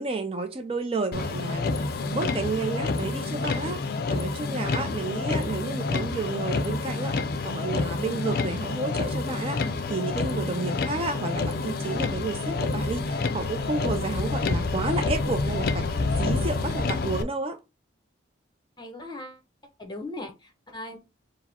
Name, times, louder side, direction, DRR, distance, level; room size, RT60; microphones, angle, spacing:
voice 1, 0.0-3.8 4.1-17.6, right 3 dB, 30° right, 0.4 m, -31 dB
Motor vehicle (road), 1.1-17.2, left 3 dB, 50° left, 0.4 m, -28 dB
voice 2, 18.8-19.4 19.8-21.0, left 2 dB, 20° left, 0.8 m, -38 dB
4.8 x 2.0 x 4.2 m
head